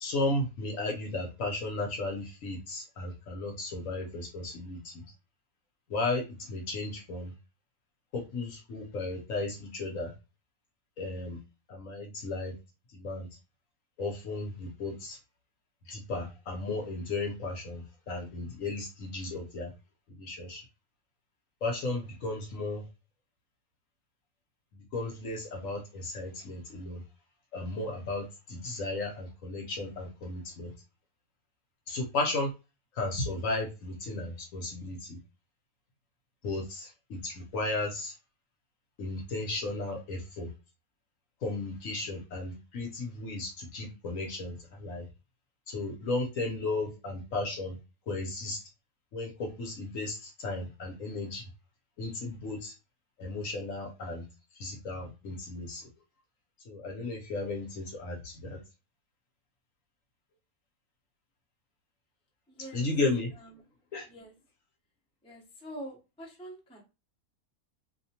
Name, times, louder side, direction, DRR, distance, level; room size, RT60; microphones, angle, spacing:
voice 1, 0.0-5.0 5.9-7.3 8.1-10.1 11.0-11.4 11.7-12.5 12.9-13.3 14.0-15.2 15.9-19.7 20.1-20.6 21.6-22.8 24.7-27.0 27.5-30.7 31.9-32.5 33.0-35.2 36.4-38.1 39.0-40.5 41.4-45.0 45.7-47.7 48.1-48.6 49.1-51.5 52.0-52.7 53.2-54.3 54.6-55.9 56.7-58.6 62.7-63.3 63.9-64.0, left 2 dB, 60° left, 1 dB, 1.1 m, -34 dB
voice 2, 62.5-62.8 63.4-63.6 64.1-64.3 65.2-66.8, right 1 dB, 5° left, -2 dB, 0.5 m, -45 dB
2.7 x 2.2 x 2.8 m, 0.27 s
omnidirectional pair, 1.7 m